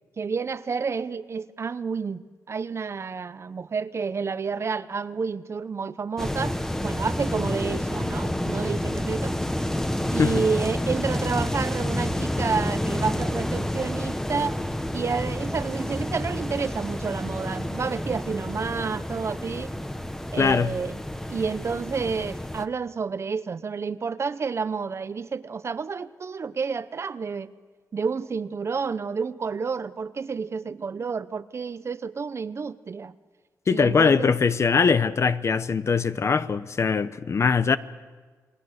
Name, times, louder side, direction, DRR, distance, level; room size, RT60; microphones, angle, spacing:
voice 1, 0.2-2.2 2.5-6.6 6.8-9.4 10.1-14.6 14.9-19.7 20.3-21.0 21.3-27.5 27.9-33.1 33.7-34.3, right 5 dB, 45° right, 0.7 m, -30 dB
sound 1, 6.2-22.7, left 1 dB, 5° left, 1.2 m, -29 dB
voice 2, 20.4-20.7 33.7-37.8, left 5 dB, 45° left, 0.8 m, -21 dB
29.0 x 20.5 x 6.5 m
cardioid pair, 100°, 6 cm